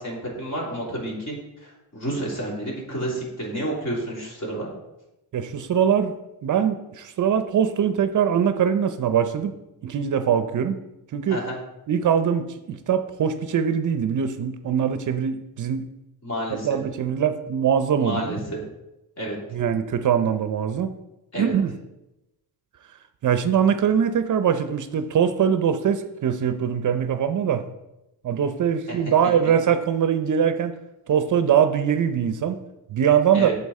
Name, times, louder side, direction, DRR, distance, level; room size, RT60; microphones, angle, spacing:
voice 1, 0.0-1.3 1.6-4.7 11.3-11.6 16.2-16.7 18.0-18.6 19.2-19.4 21.3-21.5 33.3-33.5, right 1 dB, 40° left, -3 dB, 3.0 m, -30 dB
voice 2, 5.3-6.2 6.4-9.5 9.8-10.8 11.1-11.4 11.9-15.9 16.6-18.4 19.5-20.9 21.4-21.7 23.2-27.6 28.2-30.7 31.1-32.6 32.9-33.5, right 8 dB, 50° right, 9 dB, 0.6 m, -22 dB
8.4 x 7.0 x 4.2 m, 0.94 s
cardioid pair, 135°, 40 cm